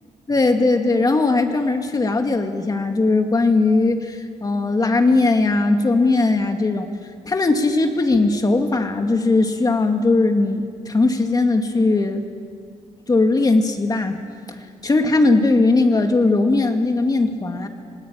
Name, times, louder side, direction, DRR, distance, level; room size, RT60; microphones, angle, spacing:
voice 1, 0.3-6.9 7.3-12.2 13.1-14.2 14.5-14.6 14.8-17.7, left 3 dB, 30° left, 5 dB, 2.3 m, -19 dB
27.5 x 19.0 x 8.9 m, 2.2 s
cardioid pair, 115°, 13 cm